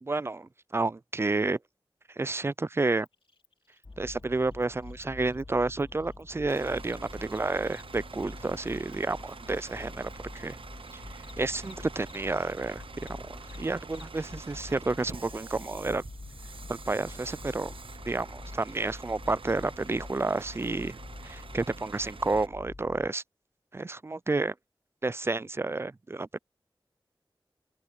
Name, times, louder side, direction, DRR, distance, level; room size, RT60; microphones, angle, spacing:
voice 1, 0.0-1.6 2.1-3.1 4.0-10.6 10.9-12.8 13.3-16.0 16.7-17.7 18.1-21.0 21.2-23.2 23.7-24.5 25.0-26.4, right 3 dB, 30° right, 0.3 m, -30 dB
Cricket, 3.0-12.6 12.9-18.5, left 4 dB, 75° left, 2.8 m, -61 dB
sound 1, 3.8-23.1, left 3 dB, 45° left, 1.6 m, -46 dB
Bus / Idling, 6.5-22.5, right 5 dB, 75° right, 0.7 m, -47 dB
open air
wide cardioid pair, 60°, 9 cm